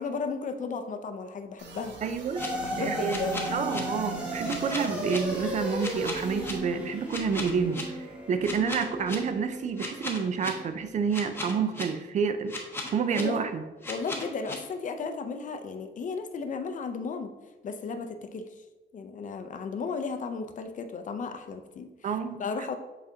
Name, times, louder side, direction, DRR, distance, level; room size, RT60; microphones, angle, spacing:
voice 1, 0.0-1.9 2.6-3.4 13.1-13.5 13.9-17.3 17.6-18.4 18.9-21.9 22.4-22.7, left 4 dB, 40° left, 7 dB, 0.5 m, -34 dB
sound 1, 1.6-6.6, right 2 dB, 70° right, 1.1 m, -45 dB
voice 2, 2.0-2.4 2.8-12.5 12.9-13.6 22.0-22.4, right 6 dB, 40° right, 9 dB, 0.5 m, -29 dB
sound 2, 2.1-2.5 3.1-3.8 4.5-5.2 5.8-6.5 7.1-7.8 8.4-9.2 9.8-10.5 11.1-11.8 12.5-13.2 13.8-14.6, left 2 dB, 10° left, 0.9 m, -36 dB
sound 3, 2.4-10.9, equal, 5° right, 1.1 m, -35 dB
7.3 x 4.9 x 2.7 m, 1.2 s
cardioid pair, 160°, 19 cm